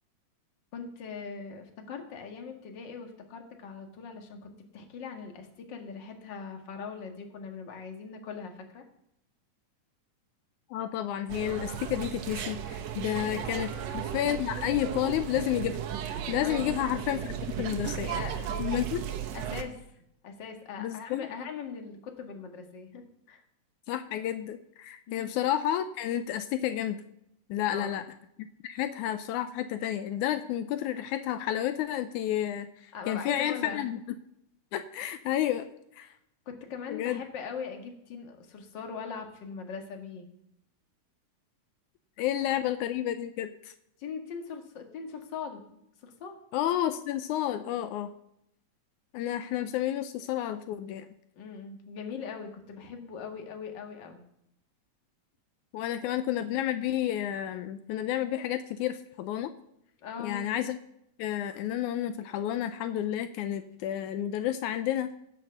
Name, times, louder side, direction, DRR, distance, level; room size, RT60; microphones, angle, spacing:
voice 1, 0.7-8.8 13.2-13.5 13.7-13.9 16.4-16.8 17.8-18.8 19.3-19.8 20.2-23.4 25.1-25.3 27.7-28.0 32.9-33.8 36.5-40.3 44.0-45.6 46.0-46.4 51.4-54.2 56.0-56.1 60.0-60.5, left 6 dB, 45° left, 4 dB, 2.0 m, -41 dB
voice 2, 10.7-15.8 16.0-18.1 18.6-19.0 20.8-21.3 23.9-27.0 27.5-28.0 28.4-34.0 34.7-35.7 36.0-36.1 36.9-37.2 42.2-43.7 46.5-48.1 49.1-51.1 55.7-59.5 60.2-60.8 61.2-65.1, left 11 dB, 85° left, 10 dB, 2.1 m, -31 dB
sound 1, 11.3-19.6, right 9 dB, 70° right, 1.9 m, -35 dB
16.0 x 6.4 x 6.7 m, 0.77 s
omnidirectional pair, 3.4 m